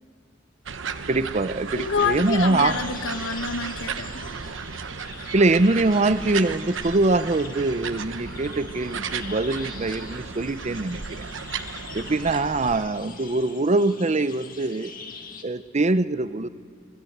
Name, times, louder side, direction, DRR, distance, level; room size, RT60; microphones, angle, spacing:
sound 1, 0.7-12.8, right 5 dB, 80° right, 1.0 m, -35 dB
voice 1, 1.1-2.8 5.3-11.3 11.9-14.9 15.4-16.5, right 2 dB, 35° right, 13 dB, 0.7 m, -23 dB
voice 2, 1.7-4.3, left 5 dB, 85° left, 10 dB, 1.1 m, -28 dB
sound 2, 1.7-15.4, left 5 dB, 50° left, 2.0 m, -44 dB
24.5 x 19.0 x 8.0 m, 2.5 s
head